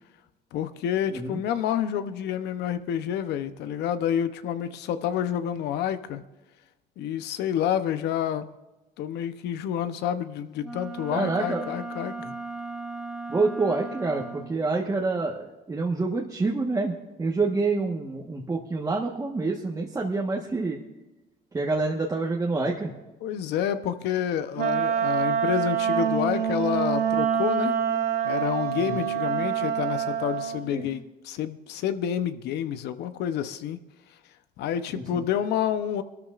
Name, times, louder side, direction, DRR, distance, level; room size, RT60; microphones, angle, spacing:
voice 1, 0.5-6.2 7.0-8.5 9.0-12.1 23.2-27.7 28.2-33.8 34.6-36.0, left 9 dB, 80° left, 11 dB, 0.8 m, -28 dB
Wind instrument woodwind instrument, 10.6-14.7, right 3 dB, 5° right, 1.4 m, -37 dB
voice 2, 11.1-11.7 12.2-12.3 13.3-20.8 21.5-22.9 28.8-29.0 30.7-30.9 35.1-35.2, right 3 dB, 20° right, -1 dB, 1.3 m, -27 dB
Wind instrument woodwind instrument 2, 24.6-30.7, right 8 dB, 85° right, 1.9 m, -26 dB
23.5 x 13.0 x 2.5 m, 1.1 s
cardioid pair, 110°, 17 cm